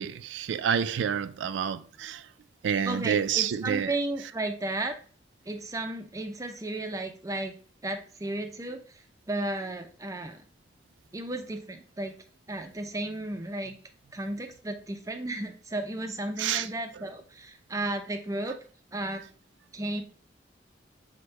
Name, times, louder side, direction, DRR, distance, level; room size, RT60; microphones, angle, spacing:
voice 1, 0.0-2.3 2.6-3.9 16.4-16.7, right 8 dB, 85° right, 0.3 m, -28 dB
voice 2, 2.8-4.9 5.5-7.5 7.8-8.8 9.3-10.4 11.1-12.1 12.5-13.7 14.1-18.5 18.9-19.2 19.7-20.0, right 2 dB, 20° right, 0.4 m, -34 dB
6.0 x 2.2 x 3.1 m
head